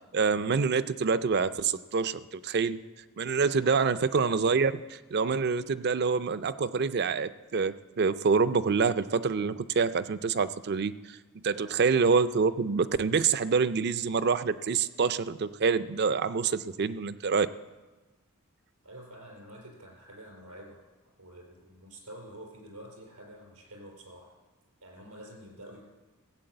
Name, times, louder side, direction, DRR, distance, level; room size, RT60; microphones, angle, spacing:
voice 1, 0.1-2.8 3.2-11.2 11.4-17.5, right 5 dB, 45° right, 14 dB, 0.4 m, -26 dB
voice 2, 18.8-20.8 21.2-24.3 24.8-25.8, right 1 dB, 85° right, 0 dB, 4.5 m, -48 dB
15.5 x 7.8 x 7.8 m, 1.2 s
head